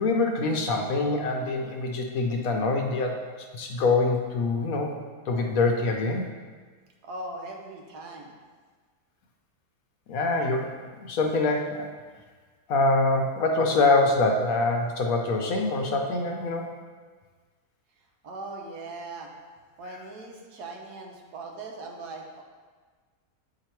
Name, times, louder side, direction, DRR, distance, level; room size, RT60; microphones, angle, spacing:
voice 1, 0.0-3.2 3.5-4.9 5.3-6.3 10.1-10.7 11.0-11.9 12.7-16.7, left 3 dB, 70° left, 2 dB, 1.1 m, -24 dB
voice 2, 7.0-8.4 18.2-19.3 19.8-22.4, right 2 dB, 85° right, 1 dB, 1.4 m, -39 dB
8.1 x 2.9 x 4.4 m, 1.5 s
omnidirectional pair, 1.6 m